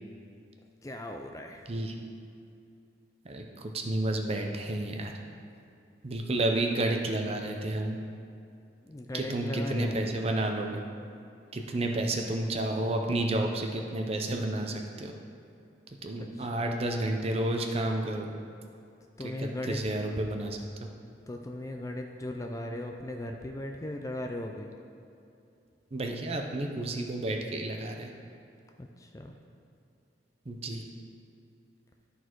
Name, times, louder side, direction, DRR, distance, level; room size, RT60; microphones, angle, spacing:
voice 1, 0.8-1.6 8.8-10.0 11.8-12.0 16.2-16.7 19.2-19.8 21.3-24.7 28.8-29.3, left 1 dB, 15° left, 3 dB, 0.4 m, -38 dB
voice 2, 3.2-5.1 6.0-8.0 9.1-10.8 11.5-15.1 16.0-18.3 19.4-20.6 25.9-28.1 30.5-30.8, right 1 dB, 35° right, 3 dB, 0.6 m, -31 dB
12.5 x 4.2 x 4.6 m, 2.5 s
head